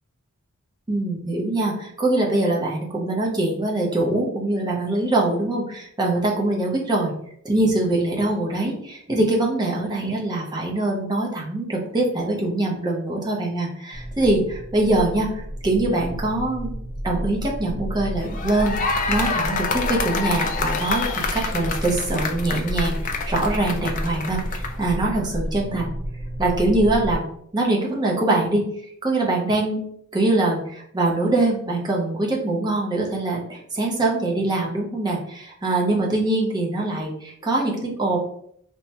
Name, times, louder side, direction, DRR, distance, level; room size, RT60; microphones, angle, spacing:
voice 1, 0.9-7.1 7.4-16.7 17.0-23.0 23.2-25.9 26.4-27.2 27.5-28.6 29.0-29.8 30.1-38.2, right 2 dB, 20° right, -2 dB, 0.6 m, -23 dB
sound 1, 13.9-27.1, equal, 35° right, 0.9 m, -31 dB
sound 2, 18.2-24.8, left 4 dB, 35° left, 0.3 m, -27 dB
3.3 x 2.1 x 2.8 m, 0.67 s
head